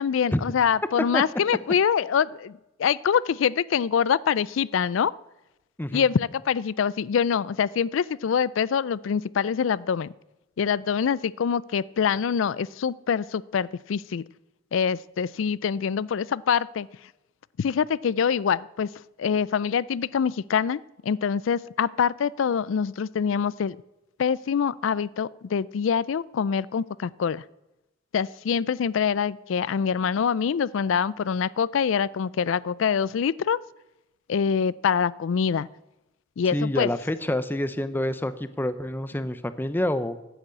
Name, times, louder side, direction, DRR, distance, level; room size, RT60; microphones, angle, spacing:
voice 1, 0.0-5.1 5.9-10.1 10.6-14.2 14.7-16.9 17.6-18.9 19.2-23.8 24.2-27.4 28.1-33.6 34.3-35.7 36.4-36.9, left 7 dB, 65° left, 21 dB, 0.4 m, -25 dB
voice 2, 36.5-40.2, left 1 dB, 10° left, 12 dB, 0.6 m, -27 dB
10.0 x 8.0 x 8.4 m, 0.95 s
head